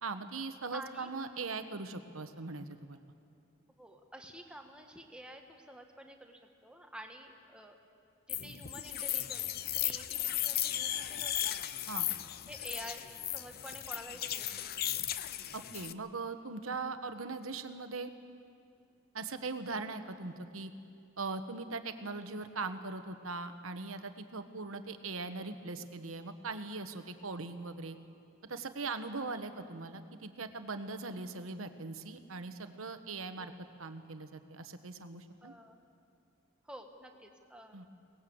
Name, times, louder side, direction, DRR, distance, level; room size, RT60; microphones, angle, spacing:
voice 1, 0.0-3.0 11.9-12.1 15.5-18.1 19.1-20.7 21.2-28.0 28.5-33.5 33.8-35.5 37.7-37.9, right 3 dB, 85° right, 9 dB, 1.2 m, -40 dB
voice 2, 0.7-1.1 3.8-7.8 8.3-9.4 9.7-11.6 12.5-14.8 33.4-33.5 35.4-35.8 36.6-37.8, right 1 dB, 5° right, 3 dB, 1.5 m, -49 dB
sound 1, 8.3-15.9, left 12 dB, 50° left, 0.6 m, -36 dB
23.0 x 19.0 x 7.9 m, 2.5 s
head